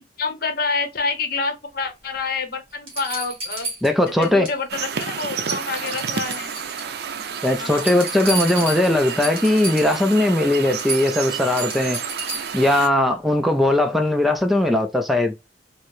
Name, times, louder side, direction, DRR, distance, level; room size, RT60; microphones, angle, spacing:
voice 1, 0.0-3.7 4.1-6.5 7.6-7.9, left 4 dB, 55° left, 0.8 m, -27 dB
sound 1, 2.2-2.3 2.9-4.6 4.9-5.2 5.5-6.9 7.3-10.0 10.4-10.5 10.8-12.7 14.4-14.5, right 2 dB, 30° right, 1.8 m, -32 dB
voice 2, 3.8-4.5 7.4-12.0 12.5-15.3, left 1 dB, ahead, 0.3 m, -19 dB
sound 2, 4.7-12.9, right 7 dB, 60° right, 0.4 m, -30 dB
4.5 x 2.0 x 3.0 m
head